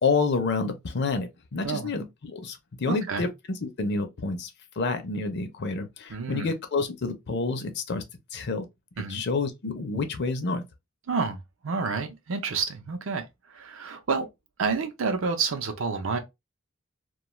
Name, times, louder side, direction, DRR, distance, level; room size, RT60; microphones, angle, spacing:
voice 1, 0.0-4.5 4.8-8.0 8.3-8.7 9.1-10.6, left 4 dB, 55° left, 0.5 m, -29 dB
voice 2, 2.9-3.3 6.1-6.5 9.0-9.2 11.1-14.3 14.6-16.2, right 5 dB, 65° right, 0.6 m, -29 dB
2.3 x 2.3 x 2.9 m
head